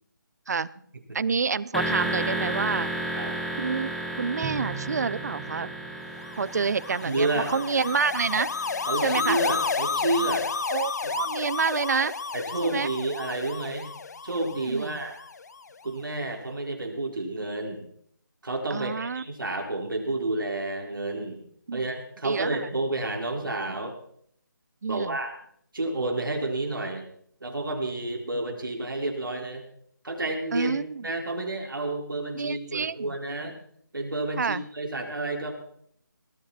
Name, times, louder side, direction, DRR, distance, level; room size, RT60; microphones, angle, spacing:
voice 1, 1.1-2.9 3.6-3.9 4.2-5.7 6.4-8.6 9.0-9.4 10.7-12.2 12.6-12.9 14.7-15.0 18.7-19.2 21.7-21.8 22.2-22.7 24.8-25.2 30.5-31.1 32.3-33.2 34.4-34.6, right 5 dB, 55° right, 21 dB, 0.6 m, -28 dB
sound 1, 1.7-9.5, right 1 dB, ahead, 1.4 m, -33 dB
Bowed string instrument, 4.4-7.1, right 7 dB, 20° right, 1.2 m, -41 dB
sound 2, 6.3-15.6, left 5 dB, 55° left, 1.0 m, -31 dB
voice 2, 7.0-7.5 8.9-10.5 11.0-11.1 12.3-13.9 14.2-15.1 15.8-17.9 18.4-21.4 21.7-23.9 24.9-25.3 25.7-27.1 27.4-29.6 30.0-30.7 31.0-33.6 33.9-35.5, right 2 dB, 80° right, 2 dB, 4.8 m, -30 dB
19.0 x 14.0 x 4.3 m, 0.64 s
figure-of-eight pair, 160°, 11 cm